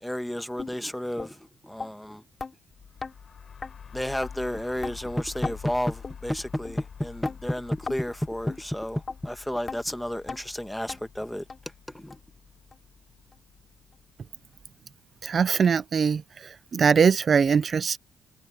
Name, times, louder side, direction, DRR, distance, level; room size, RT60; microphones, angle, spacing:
voice 1, 0.0-2.2 3.9-11.4 11.9-12.2, left 1 dB, 5° left, 1.3 m, -31 dB
sound 1, 0.6-0.7 1.2-1.3 1.8-1.9 2.4-2.5 3.0-3.1 3.6-3.7 4.2-4.3 4.8-5.0 5.4-5.6 6.0-6.2 6.7-6.8 7.2-7.4 7.9-8.0 8.5-8.6 9.1-9.2 9.7-9.8 10.3-10.4 10.9-11.0 11.5-11.6 12.1-12.2 12.7-12.8 13.3-13.4, left 4 dB, 35° left, 2.7 m, -36 dB
sound 2, 2.7-14.4, left 7 dB, 50° left, 6.3 m, -47 dB
voice 2, 15.2-18.0, right 6 dB, 45° right, 0.5 m, -22 dB
cardioid pair, 90°, 0 cm